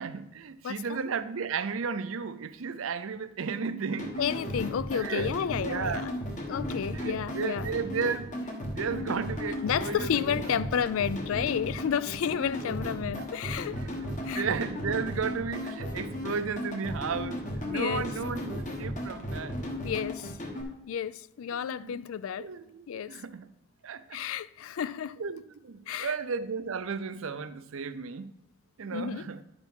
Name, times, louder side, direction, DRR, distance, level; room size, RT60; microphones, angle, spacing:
voice 1, 0.0-4.2 4.9-6.1 6.9-10.7 13.2-13.3 13.7-19.6 21.6-22.0 22.4-23.5 23.8-24.2 25.2-28.3 28.8-29.4, right 5 dB, 70° right, 0.5 m, -34 dB
voice 2, 0.6-1.0 4.2-6.1 6.5-7.7 9.6-13.8 14.2-14.5 17.7-18.0 19.8-20.3 20.9-22.5 22.9-23.2 24.1-25.2 25.9-26.1 28.9-29.2, left 8 dB, 70° left, 0.3 m, -31 dB
sound 1, 4.0-20.6, left 1 dB, 35° left, 1.3 m, -35 dB
10.5 x 4.8 x 5.3 m
head